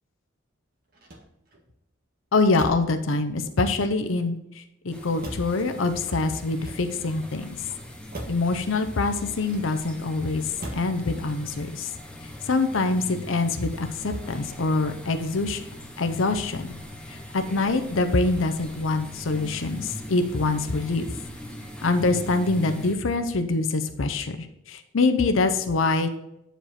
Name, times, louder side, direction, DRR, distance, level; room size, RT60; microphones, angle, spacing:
Motor vehicle (road), 0.9-1.7 2.5-3.0 3.7-4.4 5.2-5.7 6.5-7.2 8.1-8.5 9.4-10.0 10.6-11.0 11.3-11.8, right 1 dB, 50° right, 1.6 m, -39 dB
voice 1, 2.3-7.6 8.3-11.9 12.4-15.6 16.0-16.8 17.1-21.1 21.8-26.2, left 3 dB, 80° left, 7 dB, 0.7 m, -25 dB
sound 1, 4.9-22.9, left 1 dB, 5° left, 0.9 m, -41 dB
9.1 x 5.1 x 4.2 m, 0.82 s
head